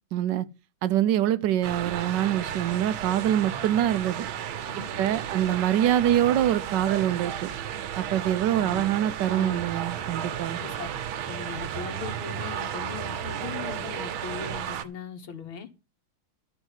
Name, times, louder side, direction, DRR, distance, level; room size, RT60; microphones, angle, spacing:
voice 1, 0.1-0.4 0.8-4.3 5.0-7.5 8.0-10.6, right 11 dB, 65° right, 1.3 m, -25 dB
sound 1, 1.6-14.8, right 9 dB, 85° right, 1.7 m, -33 dB
voice 2, 4.6-4.9 5.2-5.4 8.5-8.9 9.2-9.6 10.5-10.9 11.2-15.7, left 7 dB, 75° left, 2.3 m, -39 dB
12.0 x 4.6 x 8.0 m
omnidirectional pair, 2.2 m